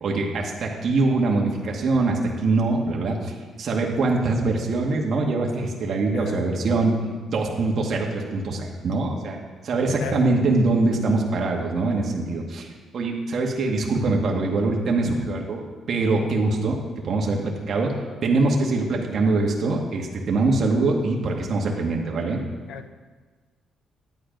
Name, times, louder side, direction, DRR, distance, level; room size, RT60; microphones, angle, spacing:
voice 1, 0.0-6.9 7.3-9.4 9.6-16.8 17.0-17.9 18.2-22.4, right 3 dB, 50° right, -1 dB, 1.7 m, -23 dB
voice 2, 6.1-6.5 10.0-10.2 22.7-22.9, left 7 dB, 90° left, 8 dB, 0.8 m, -34 dB
11.5 x 8.9 x 5.2 m, 1.4 s
cardioid pair, 145°, 0 cm